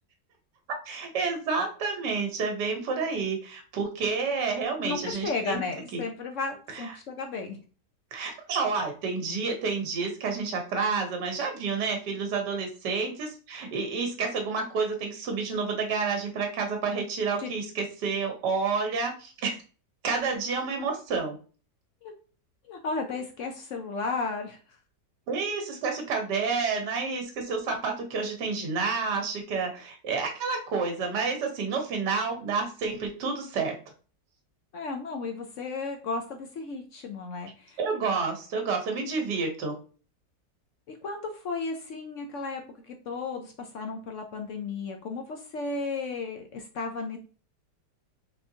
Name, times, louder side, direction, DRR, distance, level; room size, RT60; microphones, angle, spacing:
voice 1, 0.9-5.6 5.9-6.0 6.7-6.8 8.1-19.6 20.0-21.4 25.3-33.7 37.8-39.7, right 4 dB, 75° right, 3 dB, 1.6 m, -29 dB
voice 2, 4.8-7.6 17.4-17.5 22.0-22.1 22.6-24.6 34.7-37.8 40.9-47.2, left 4 dB, 65° left, 4 dB, 0.8 m, -34 dB
4.3 x 3.5 x 2.7 m, 0.38 s
omnidirectional pair, 1.8 m